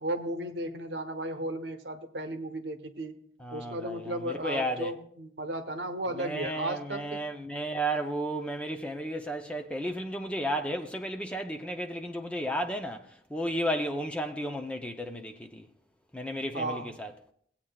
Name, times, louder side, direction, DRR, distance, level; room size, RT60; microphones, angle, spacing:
voice 1, 0.0-3.2 3.5-7.3 16.5-16.9, right 1 dB, 70° right, 1.0 m, -35 dB
voice 2, 3.4-4.9 6.2-15.7 16.1-17.1, equal, 5° left, 0.5 m, -33 dB
18.5 x 8.6 x 2.3 m
head